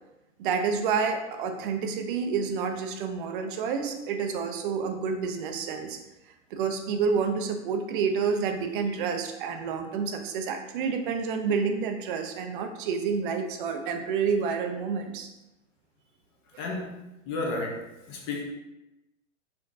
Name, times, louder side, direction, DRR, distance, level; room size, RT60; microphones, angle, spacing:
voice 1, 0.4-6.0 6.5-15.3 16.5-16.6, right 5 dB, 40° right, 5 dB, 0.6 m, -29 dB
voice 2, 16.6-16.9 17.3-18.4, left 2 dB, 30° left, -1 dB, 0.8 m, -32 dB
4.4 x 3.6 x 2.6 m, 0.96 s
hypercardioid pair, 125°, 39 cm